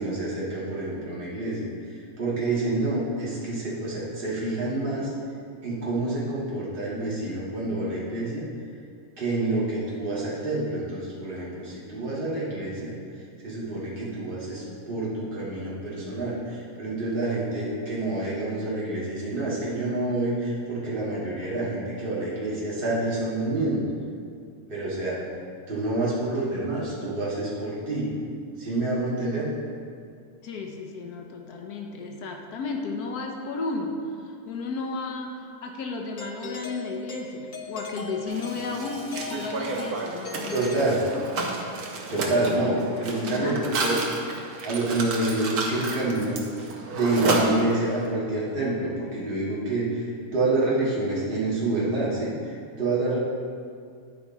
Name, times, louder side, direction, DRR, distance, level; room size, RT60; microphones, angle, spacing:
voice 1, 0.0-1.7 2.2-5.1 5.6-8.4 9.2-13.0 13.4-23.8 24.7-25.2 25.7-28.1 28.6-29.5 40.5-41.1 42.0-44.0 44.6-46.4 46.9-53.2, right 2 dB, 35° right, -7 dB, 1.9 m, -27 dB
voice 2, 30.4-40.7 42.3-42.4 43.1-44.2, left 3 dB, 80° left, 2 dB, 1.3 m, -33 dB
Doorbell, 36.2-41.6, left 4 dB, 45° left, 0.6 m, -39 dB
Mechanisms, 38.3-48.1, right 3 dB, 80° right, 1.4 m, -31 dB
10.0 x 4.9 x 4.1 m, 2.3 s
omnidirectional pair, 1.6 m